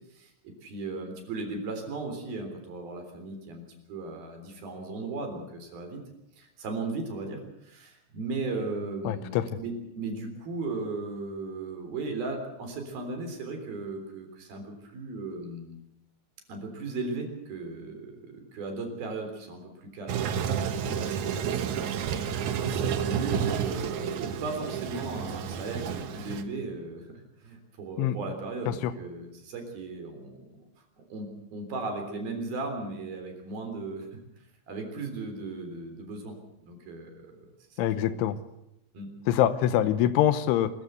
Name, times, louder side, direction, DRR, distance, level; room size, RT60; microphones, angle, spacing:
voice 1, 0.1-3.6 3.9-6.0 6.3-15.8 16.5-27.1 27.4-30.4 31.1-34.2 34.7-36.4 36.6-38.2 38.9-39.1, right 3 dB, 50° right, 5 dB, 5.2 m, -37 dB
voice 2, 9.1-9.4 28.0-28.2 28.8-28.9 37.8-38.4 39.3-40.7, left 11 dB, 80° left, 14 dB, 3.2 m, -24 dB
Toilet flush, 20.1-26.4, right 7 dB, 80° right, 1.7 m, -30 dB
25.0 x 15.0 x 8.1 m, 0.85 s
omnidirectional pair, 5.5 m